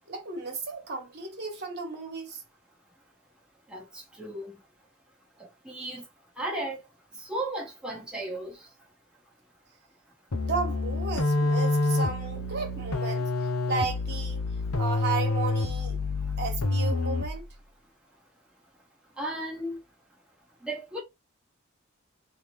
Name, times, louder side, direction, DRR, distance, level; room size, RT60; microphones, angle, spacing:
voice 1, 0.1-2.4 10.4-14.4 14.8-16.0 16.4-17.5, right 4 dB, 50° right, 1.5 m, -34 dB
voice 2, 4.2-4.6 5.6-6.0 6.4-6.8 7.2-8.6 19.2-19.8 20.6-21.0, right 1 dB, 5° right, 1.0 m, -34 dB
sound 1, 10.3-17.5, left 2 dB, 75° left, 0.8 m, -28 dB
3.5 x 3.0 x 3.0 m
head